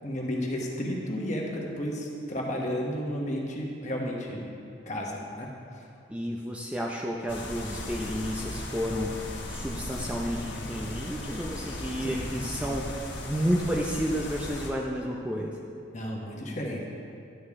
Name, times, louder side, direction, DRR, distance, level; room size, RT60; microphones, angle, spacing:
voice 1, 0.0-4.5 4.9-5.5 5.8-5.9 12.0-12.8 15.9-16.8, equal, 40° left, -1 dB, 1.2 m, -33 dB
voice 2, 6.1-9.2 9.5-15.6, equal, 5° right, -2 dB, 0.5 m, -31 dB
sound 1, 7.3-14.7, left 1 dB, 70° left, 1.3 m, -37 dB
11.5 x 8.8 x 3.6 m, 2.5 s
head